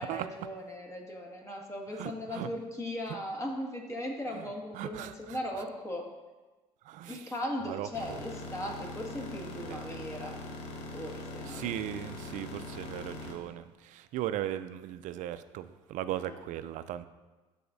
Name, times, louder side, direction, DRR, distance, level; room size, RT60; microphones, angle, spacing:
voice 1, 0.0-6.0 7.1-10.4 10.9-11.7 16.2-16.4, equal, 20° left, -1 dB, 1.7 m, -38 dB
voice 2, 2.0-2.5 4.8-5.1 6.9-7.2 7.7-7.9 9.7-9.8 11.5-17.1, right 12 dB, 65° right, 13 dB, 0.4 m, -37 dB
sound 1, 7.9-13.3, left 2 dB, 80° left, 1.0 m, -42 dB
12.0 x 4.1 x 2.6 m, 1.2 s
supercardioid pair, 75°, 13 cm